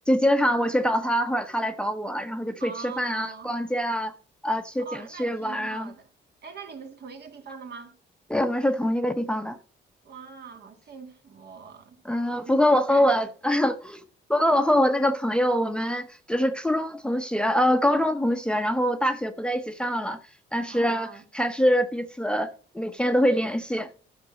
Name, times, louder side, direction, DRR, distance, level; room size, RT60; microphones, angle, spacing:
voice 1, 0.1-2.7 3.0-4.1 4.4-5.9 8.3-9.6 12.0-14.0 14.3-20.2 20.5-23.9, equal, 5° left, 0.8 m, -24 dB
voice 2, 2.6-3.5 4.8-6.1 6.4-8.0 10.0-12.0 12.5-13.1 20.6-21.2, right 5 dB, 55° right, 2.0 m, -42 dB
12.0 x 6.0 x 5.1 m
cardioid pair, 90°, 20 cm